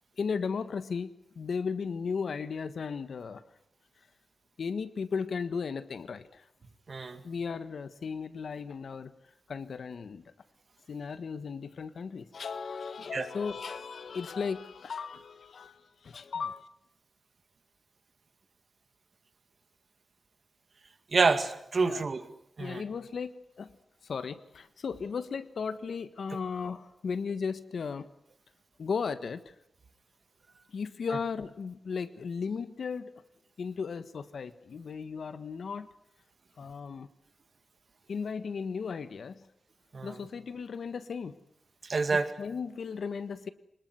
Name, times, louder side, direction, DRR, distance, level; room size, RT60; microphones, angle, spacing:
voice 1, 0.2-3.4 4.6-6.5 7.2-9.1 9.5-10.3 10.9-16.7 21.8-22.1 22.6-23.7 24.0-28.1 28.8-29.4 30.7-33.1 33.6-35.9 36.6-37.1 38.1-39.5 40.0-41.4 42.1-43.5, left 5 dB, 75° left, 12 dB, 1.5 m, -36 dB
voice 2, 6.9-7.2 13.1-13.3 21.1-22.2 22.6-22.8 39.9-40.2 41.9-42.3, right 4 dB, 45° right, 9 dB, 2.2 m, -27 dB
25.0 x 20.5 x 9.6 m, 0.77 s
wide cardioid pair, 180°, 0 cm